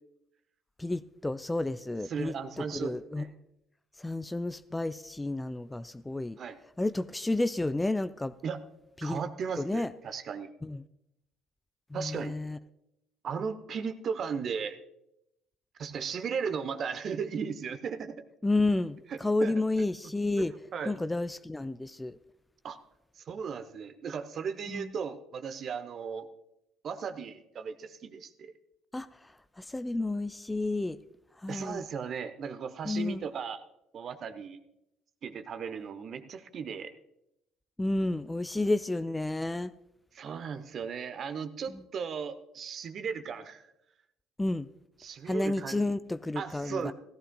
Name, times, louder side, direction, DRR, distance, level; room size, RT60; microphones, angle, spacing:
voice 1, 0.8-3.2 4.0-6.4 6.8-8.3 9.0-9.2 9.6-9.9 10.6-10.8 11.9-12.6 18.4-20.5 20.9-22.2 24.7-24.9 28.9-29.1 29.6-31.0 31.4-31.8 32.8-33.2 37.8-39.7 41.7-41.8 44.4-44.7 45.3-46.9, left 2 dB, 10° left, 13 dB, 0.4 m, -31 dB
voice 2, 2.1-3.3 6.4-6.6 8.4-8.6 9.0-10.5 11.9-12.3 13.2-14.8 15.8-18.1 19.4-19.5 20.0-20.1 20.4-20.9 22.6-22.8 23.2-26.3 26.8-28.5 31.5-33.6 33.9-34.6 35.2-36.9 40.1-43.6 45.0-45.9 46.4-46.9, right 6 dB, 45° right, 11 dB, 0.9 m, -36 dB
16.5 x 14.5 x 2.3 m, 0.84 s
figure-of-eight pair, 55°, 0 cm